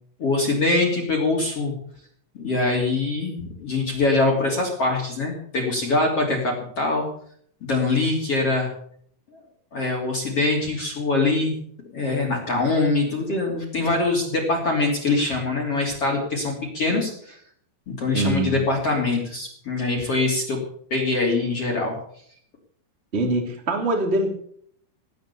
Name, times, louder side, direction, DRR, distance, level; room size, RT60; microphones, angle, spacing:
voice 1, 0.2-1.7 2.3-7.1 7.6-8.7 9.7-11.5 11.9-17.4 17.9-20.6 20.9-22.0, left 3 dB, 35° left, -1 dB, 3.3 m, -23 dB
voice 2, 18.1-18.6 23.1-24.3, right 2 dB, 20° right, 4 dB, 2.1 m, -23 dB
18.5 x 9.3 x 7.0 m, 0.62 s
omnidirectional pair, 5.7 m